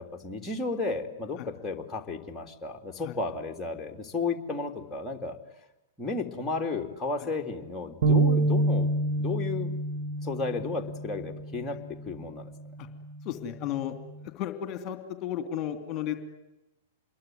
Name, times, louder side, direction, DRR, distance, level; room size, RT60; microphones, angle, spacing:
voice 1, 0.0-5.4 6.0-8.9 9.2-9.7 10.2-12.5, left 3 dB, 10° left, 1 dB, 3.3 m, -33 dB
sound 1, 8.0-14.3, right 2 dB, 55° right, 2.5 m, -29 dB
voice 2, 13.2-14.0 14.2-16.1, left 11 dB, 35° left, 9 dB, 2.9 m, -34 dB
27.0 x 22.5 x 9.4 m, 0.96 s
hypercardioid pair, 110°, 0 cm